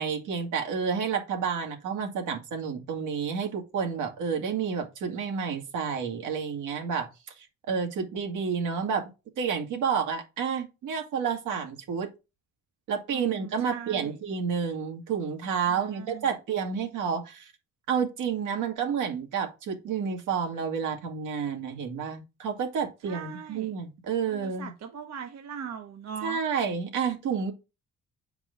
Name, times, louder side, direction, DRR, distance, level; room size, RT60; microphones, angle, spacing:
voice 1, 0.0-7.1 7.7-9.0 9.4-12.1 12.9-17.5 17.9-24.7 26.2-27.5, right 6 dB, 85° right, 2.2 m, -30 dB
voice 2, 13.1-14.2 15.7-16.3 23.0-23.7 24.2-26.4, right 7 dB, 60° right, 1.1 m, -40 dB
8.2 x 4.7 x 3.8 m
cardioid pair, 90°, 30 cm